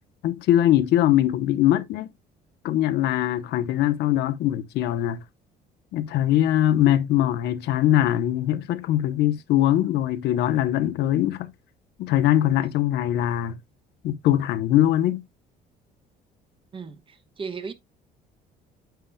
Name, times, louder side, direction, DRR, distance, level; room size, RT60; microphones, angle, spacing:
voice 1, 0.2-2.1 2.6-5.2 5.9-11.5 12.0-13.6 14.0-15.2, left 12 dB, 80° left, 0.9 m, -22 dB
voice 2, 16.7-17.7, right 5 dB, 30° right, 1.1 m, -36 dB
9.4 x 6.7 x 2.2 m
cardioid pair, 110°, 17 cm